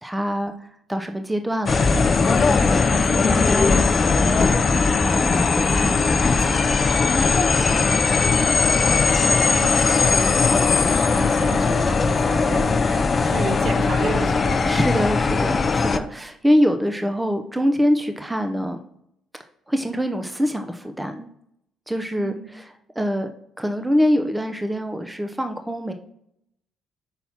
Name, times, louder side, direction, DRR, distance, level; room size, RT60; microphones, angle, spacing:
voice 1, 0.0-4.7 5.0-6.6 8.2-8.5 14.6-18.8 19.7-21.3 21.9-22.7 23.0-23.3 23.6-25.9, equal, 10° right, 6 dB, 0.6 m, -25 dB
sound 1, 1.7-16.0, left 4 dB, 40° left, 0.5 m, -19 dB
voice 2, 7.6-8.4 9.0-14.8 22.2-22.5, right 4 dB, 60° right, 4 dB, 1.3 m, -32 dB
5.7 x 4.1 x 5.8 m, 0.74 s
supercardioid pair, 65°, 0 cm